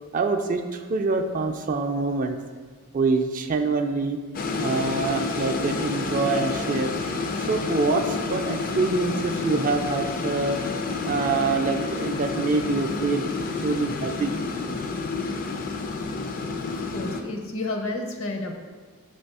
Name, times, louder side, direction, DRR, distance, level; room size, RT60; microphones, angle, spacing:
voice 1, 0.1-2.4 2.9-4.2 4.6-6.9 7.4-10.6 11.0-13.3 13.6-14.4, right 3 dB, 35° right, 6 dB, 0.3 m, -25 dB
sound 1, 4.3-17.2, left 4 dB, 40° left, 0.4 m, -29 dB
voice 2, 16.6-18.5, left 2 dB, 60° left, 3 dB, 0.8 m, -31 dB
5.7 x 3.4 x 5.4 m, 1.4 s
head